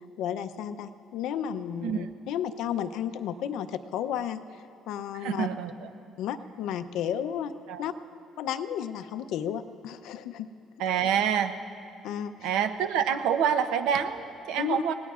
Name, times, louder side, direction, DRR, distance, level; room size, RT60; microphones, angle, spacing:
voice 1, 0.2-5.5 6.2-7.5 7.8-7.9 8.4-10.5 12.0-12.5 14.6-14.8, left 9 dB, 70° left, 10 dB, 0.6 m, -33 dB
voice 2, 5.2-5.9 7.7-7.9 10.8-11.6 12.4-14.9, right 8 dB, 90° right, 9 dB, 0.8 m, -27 dB
29.5 x 18.0 x 2.5 m, 2.6 s
cardioid pair, 160°, 0 cm